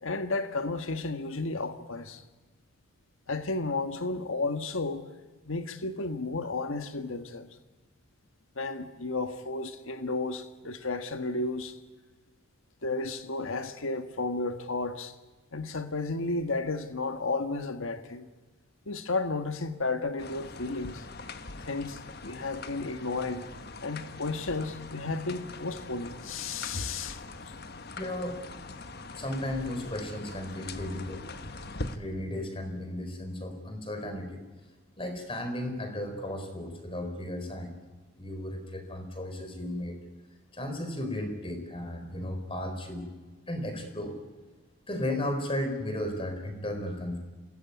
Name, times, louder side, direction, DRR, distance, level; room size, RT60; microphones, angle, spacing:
voice 1, 0.0-2.2 3.3-5.0 5.5-7.5 8.5-11.7 12.8-15.2 15.5-18.3 18.9-21.0 21.6-23.5 23.8-27.2, left 3 dB, 70° left, 1.6 m, -33 dB
sound 1, 20.2-32.0, left 3 dB, 50° left, 1.4 m, -42 dB
voice 2, 28.0-28.4 29.2-31.3 31.9-34.4 35.0-37.8 38.2-40.0 40.5-43.1 43.5-44.2 44.9-47.2, left 1 dB, 25° left, 4.4 m, -34 dB
26.5 x 19.5 x 9.8 m
head